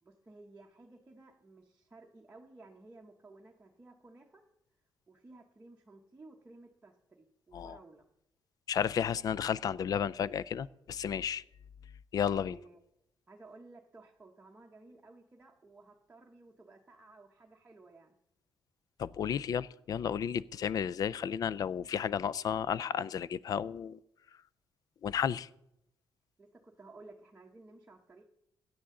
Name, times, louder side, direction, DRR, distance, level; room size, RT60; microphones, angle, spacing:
voice 1, 0.0-4.4 5.1-8.1 12.5-12.8 13.3-18.1 26.4-28.2, right 2 dB, 20° right, -1 dB, 0.9 m, -56 dB
voice 2, 8.7-11.4 12.1-12.6 19.0-24.0 25.0-25.5, left 8 dB, 50° left, 20 dB, 0.4 m, -32 dB
16.5 x 10.0 x 3.8 m, 0.82 s
cardioid pair, 135°, 8 cm